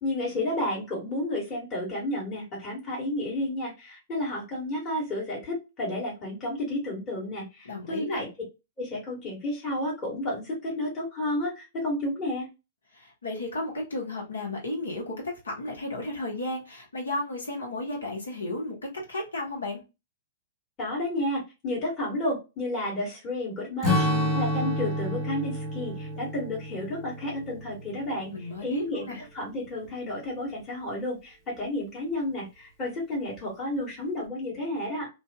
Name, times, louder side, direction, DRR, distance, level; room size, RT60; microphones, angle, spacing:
voice 1, 0.0-8.3 8.8-12.5 20.8-28.3 28.6-35.1, left 1 dB, 30° left, 1.5 m, -31 dB
voice 2, 7.6-8.2 12.9-19.8 28.3-29.2, left 2 dB, 85° left, 1.4 m, -33 dB
Strum, 23.8-28.5, left 1 dB, 10° left, 1.4 m, -29 dB
2.7 x 2.6 x 2.2 m
hypercardioid pair, 125°, 0 cm